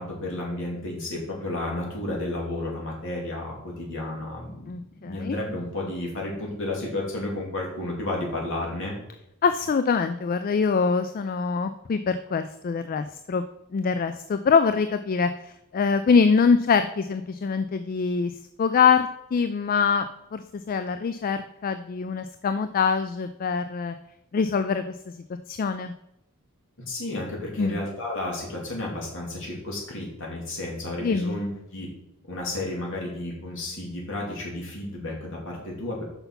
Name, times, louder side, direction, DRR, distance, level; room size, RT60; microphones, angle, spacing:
voice 1, 0.0-4.7 5.0-8.9 26.9-31.9 32.3-36.0, left 2 dB, 60° left, -2 dB, 2.8 m, -32 dB
voice 2, 4.7-5.4 9.4-13.4 13.7-18.3 18.6-23.9 24.3-24.9 25.5-25.9 27.6-27.8 31.0-31.4, left 5 dB, 40° left, 10 dB, 0.3 m, -24 dB
5.9 x 5.5 x 5.7 m, 0.85 s
head